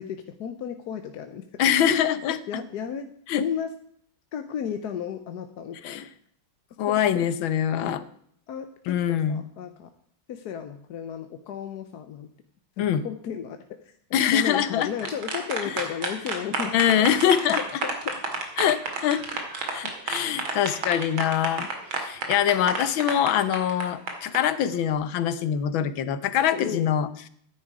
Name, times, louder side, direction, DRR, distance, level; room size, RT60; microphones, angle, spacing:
voice 1, 0.0-1.4 1.9-2.0 2.3-3.1 3.4-3.7 4.3-6.1 6.9-7.3 7.8-8.0 8.5-9.9 10.3-12.3 12.8-17.0 17.8-18.2 26.5-26.9, left 8 dB, 60° left, 8 dB, 1.2 m, -34 dB
voice 2, 1.6-2.4 3.3-3.4 5.8-6.0 6.8-8.0 8.9-9.4 12.8-13.0 14.1-14.9 16.7-17.6 18.6-19.4 19.7-27.3, left 9 dB, 75° left, 14 dB, 1.6 m, -24 dB
sound 1, 14.6-24.4, right 4 dB, 80° right, 2.9 m, -30 dB
13.0 x 10.5 x 4.8 m, 0.64 s
omnidirectional pair, 2.2 m